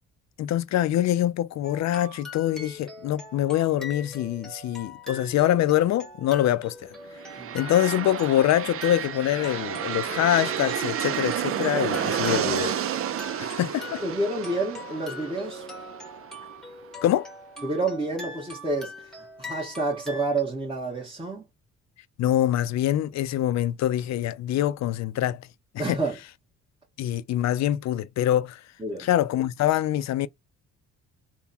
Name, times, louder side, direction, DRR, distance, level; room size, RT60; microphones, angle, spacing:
voice 1, 0.4-6.9 7.5-12.8 13.4-14.0 17.0-17.3 22.2-25.5 25.9-26.0 27.0-28.6 29.0-30.3, left 12 dB, 65° left, 0.5 m, -24 dB
sound 1, 1.6-20.4, left 1 dB, ahead, 1.4 m, -42 dB
sound 2, 7.1-16.9, right 9 dB, 50° right, 0.5 m, -31 dB
voice 2, 14.0-15.7 17.6-21.4 25.8-26.2 28.8-29.1, right 2 dB, 15° right, 1.5 m, -29 dB
3.5 x 2.3 x 4.2 m
cardioid pair, 90°, 30 cm